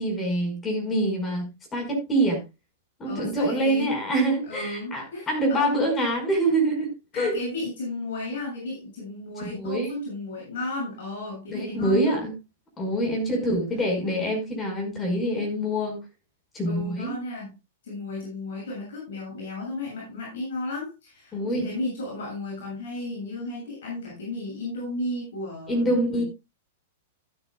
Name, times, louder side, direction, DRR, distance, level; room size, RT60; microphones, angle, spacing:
voice 1, 0.0-2.4 3.0-6.9 7.1-7.3 9.4-10.0 11.5-12.3 12.8-16.0 16.5-17.1 21.3-21.7 25.7-26.2, right 1 dB, 20° left, 5.2 m, -25 dB
voice 2, 3.0-3.9 4.5-5.7 7.1-12.2 13.3-13.5 16.7-17.5 17.8-26.3, left 2 dB, 65° left, 7.4 m, -34 dB
15.5 x 9.8 x 2.3 m
hypercardioid pair, 105°, 0 cm